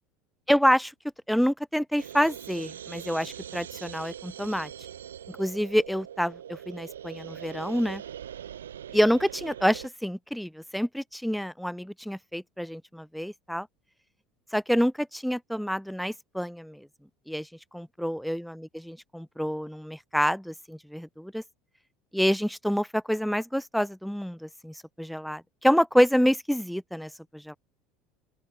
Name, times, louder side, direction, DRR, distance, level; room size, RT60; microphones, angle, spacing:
voice 1, 0.5-0.9 1.3-4.7 5.3-8.0 8.9-13.7 14.5-16.9 17.3-17.5 17.7-21.4 22.1-27.6, equal, ahead, 2.0 m, -27 dB
sound 1, 2.0-9.9, right 9 dB, 85° right, 4.6 m, -42 dB
open air
hypercardioid pair, 75°, 0 cm